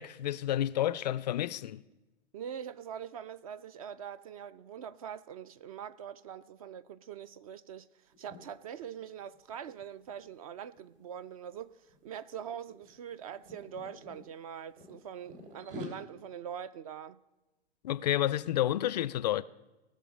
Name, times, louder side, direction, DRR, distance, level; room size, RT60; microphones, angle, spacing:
voice 1, 0.0-1.8 17.8-19.4, left 12 dB, 40° left, 0.4 m, -30 dB
voice 2, 2.3-17.2, right 8 dB, 35° right, 0.4 m, -43 dB
sound 1, 8.1-8.4 8.8-9.0 9.3-11.2 11.9-12.2 12.4-14.2 14.8-15.9, left 1 dB, 55° right, 3.5 m, -47 dB
19.0 x 6.5 x 5.1 m
figure-of-eight pair, 115°, 32 cm